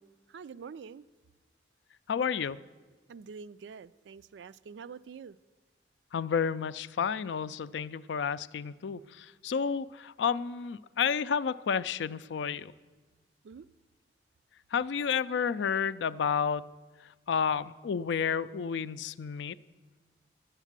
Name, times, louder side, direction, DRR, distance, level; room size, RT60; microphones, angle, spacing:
voice 1, 0.3-1.1 3.1-5.4 13.4-13.7, right 6 dB, 80° right, 0.3 m, -46 dB
voice 2, 2.1-2.6 6.1-12.7 14.7-16.7 17.3-19.6, left 6 dB, 85° left, 0.4 m, -31 dB
11.0 x 8.2 x 7.3 m
head